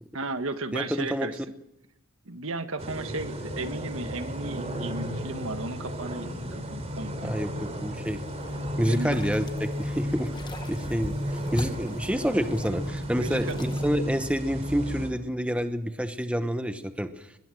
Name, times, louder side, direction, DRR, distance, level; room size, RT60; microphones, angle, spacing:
voice 1, 0.1-1.4 2.2-6.3 6.5-7.4 8.8-9.2 13.2-13.6, right 2 dB, 70° right, 9 dB, 1.6 m, -34 dB
voice 2, 0.7-1.3 7.2-8.2 8.8-10.3 10.7-17.3, equal, 5° right, 8 dB, 1.0 m, -28 dB
sound 1, 2.8-15.1, equal, 30° right, 3.9 m, -33 dB
sound 2, 8.1-13.9, left 1 dB, 20° left, 1.1 m, -43 dB
22.5 x 21.0 x 7.8 m, 0.89 s
head